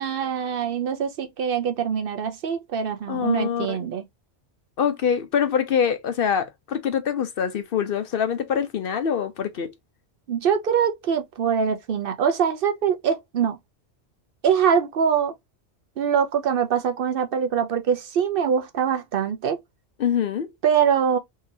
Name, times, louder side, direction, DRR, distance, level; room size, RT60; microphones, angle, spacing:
voice 1, 0.0-4.0 10.3-13.6 14.4-15.3 16.0-19.6 20.6-21.2, right 7 dB, 60° right, 0.7 m, -23 dB
voice 2, 3.1-3.8 4.8-9.7 20.0-20.5, left 8 dB, 60° left, 0.7 m, -24 dB
3.7 x 2.7 x 2.6 m
omnidirectional pair, 1.2 m